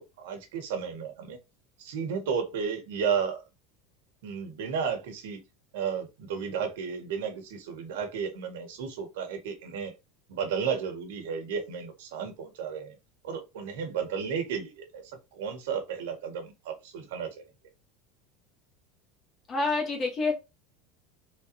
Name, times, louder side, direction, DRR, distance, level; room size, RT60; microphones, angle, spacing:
voice 1, 0.0-1.4 1.8-3.4 4.2-5.4 5.7-9.9 10.3-13.0 13.2-15.0 15.3-17.4, right 6 dB, 90° right, 1.6 m, -33 dB
voice 2, 19.5-20.3, left 3 dB, 20° left, 1.6 m, -27 dB
4.1 x 4.0 x 3.1 m
supercardioid pair, 170°, 0 cm